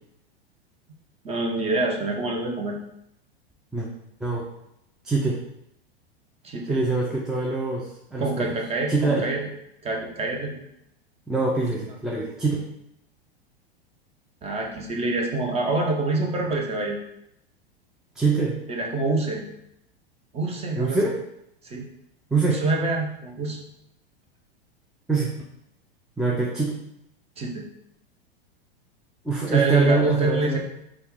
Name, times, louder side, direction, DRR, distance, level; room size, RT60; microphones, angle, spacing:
voice 1, 1.2-2.8 6.4-6.8 8.2-9.4 9.8-10.6 14.4-17.0 18.7-19.4 20.3-21.0 21.6-21.8 22.5-23.6 27.4-27.6 29.4-30.6, right 2 dB, 20° right, 1 dB, 0.7 m, -26 dB
voice 2, 5.0-5.4 6.7-8.5 8.9-9.3 11.3-12.6 18.2-18.6 20.8-21.2 22.3-22.6 25.1-25.3 26.2-26.8 29.2-30.6, right 3 dB, ahead, -4 dB, 0.4 m, -24 dB
4.2 x 2.3 x 3.5 m, 0.78 s
hypercardioid pair, 95°, 31 cm